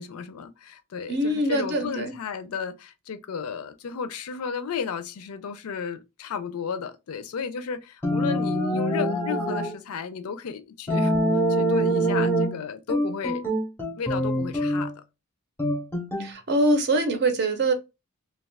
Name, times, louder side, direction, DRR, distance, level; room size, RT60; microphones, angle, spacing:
voice 1, 0.0-11.1 11.5-13.4 14.0-14.9, left 6 dB, 75° left, 0.4 m, -33 dB
voice 2, 1.1-2.1 16.2-17.7, right 1 dB, 50° right, 0.6 m, -23 dB
sound 1, 8.0-9.7 10.9-12.6 12.9-14.9 15.6-16.3, right 1 dB, 10° left, 0.6 m, -24 dB
2.3 x 2.3 x 3.3 m
head